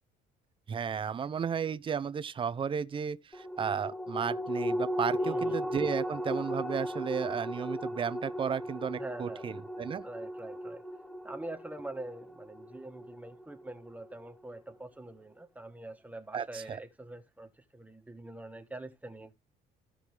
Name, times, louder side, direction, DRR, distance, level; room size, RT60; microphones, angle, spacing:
voice 1, 0.7-10.0 16.3-16.8, right 7 dB, 30° right, 0.6 m, -34 dB
sound 1, 3.3-14.1 14.5-14.6, equal, 5° left, 1.8 m, -36 dB
voice 2, 5.2-5.6 9.0-9.5 10.0-10.8 11.2-19.3, right 2 dB, 10° right, 1.3 m, -44 dB
15.0 x 5.0 x 3.3 m
cardioid pair, 110°, 17 cm